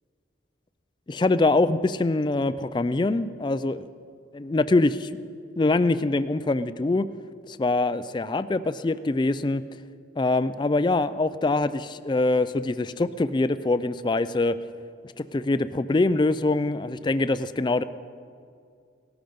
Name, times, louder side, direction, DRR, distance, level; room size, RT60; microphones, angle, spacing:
voice 1, 1.1-3.9 4.3-5.1 5.6-7.0 7.5-9.6 10.2-14.5 15.3-17.8, left 2 dB, 25° left, 13 dB, 0.3 m, -24 dB
18.0 x 13.0 x 5.3 m, 2.3 s
head